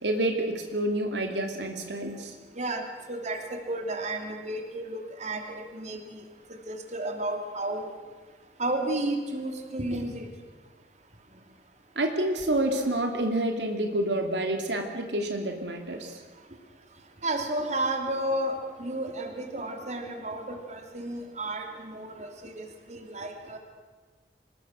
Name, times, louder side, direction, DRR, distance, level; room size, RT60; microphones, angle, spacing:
voice 1, 0.0-2.3 12.0-16.2, right 1 dB, 75° right, 4 dB, 2.5 m, -28 dB
voice 2, 2.5-6.2 6.5-7.9 8.6-10.3 17.2-23.6, right 1 dB, 45° right, 4 dB, 3.0 m, -32 dB
25.5 x 20.5 x 6.3 m, 1.4 s
head